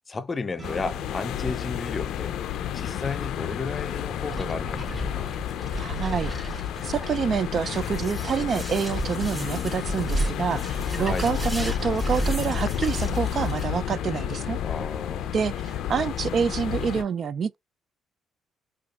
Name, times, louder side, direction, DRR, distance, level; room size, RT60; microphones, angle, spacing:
voice 1, 0.1-2.4 2.7-5.3 11.0-11.3 14.6-15.3, left 4 dB, 30° left, 0.6 m, -33 dB
sound 1, 0.6-17.0, left 10 dB, 80° left, 0.4 m, -31 dB
sound 2, 0.6-10.0, right 1 dB, 25° right, 2.0 m, -52 dB
sound 3, 4.3-13.6, right 2 dB, 10° right, 2.5 m, -33 dB
voice 2, 5.7-14.6 15.3-17.6, right 6 dB, 50° right, 0.3 m, -27 dB
5.0 x 2.4 x 2.3 m
cardioid pair, 85°, 0 cm